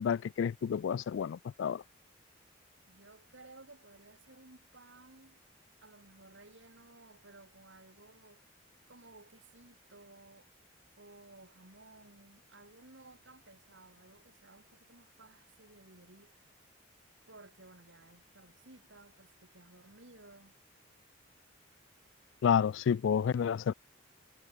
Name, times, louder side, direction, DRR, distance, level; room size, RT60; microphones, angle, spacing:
voice 1, 0.0-1.8 22.4-23.7, left 7 dB, 70° left, 0.3 m, -30 dB
voice 2, 2.9-5.4 5.8-8.4 8.9-10.5 11.0-16.3 17.3-20.5, right 2 dB, 65° right, 3.3 m, -57 dB
head